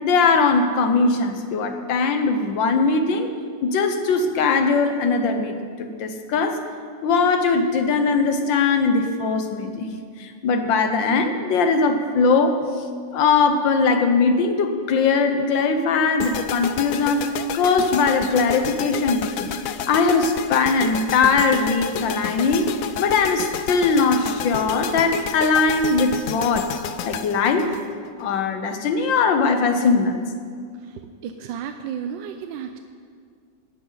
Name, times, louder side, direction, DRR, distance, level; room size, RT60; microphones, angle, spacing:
voice 1, 0.0-3.3 3.6-6.6 7.0-12.8 13.1-17.3 17.5-19.6 19.9-22.7 23.0-26.7 27.0-27.7 28.2-30.2, left 4 dB, 90° left, 7 dB, 1.7 m, -20 dB
sound 1, 16.2-28.4, left 8 dB, 70° left, 0.8 m, -31 dB
voice 2, 31.2-32.8, right 8 dB, 85° right, 7 dB, 1.3 m, -32 dB
18.5 x 11.5 x 4.0 m, 2.1 s
omnidirectional pair, 2.0 m